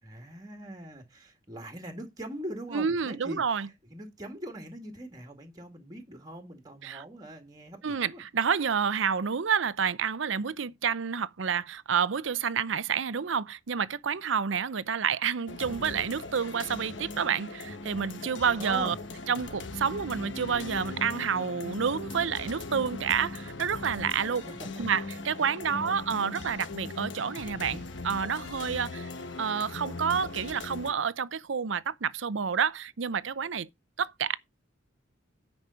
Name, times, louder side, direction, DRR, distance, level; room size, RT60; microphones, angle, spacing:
voice 1, 0.0-8.2 18.6-18.9 24.4-24.8 25.7-26.0, right 1 dB, 20° right, 2.0 m, -42 dB
voice 2, 2.7-3.7 6.8-7.0 7.8-18.9 19.3-24.4 24.8-29.1 29.4-33.7 34.0-34.4, right 6 dB, 70° right, 0.6 m, -29 dB
sound 1, 15.5-30.9, left 2 dB, 65° left, 1.3 m, -39 dB
9.6 x 5.3 x 5.7 m
head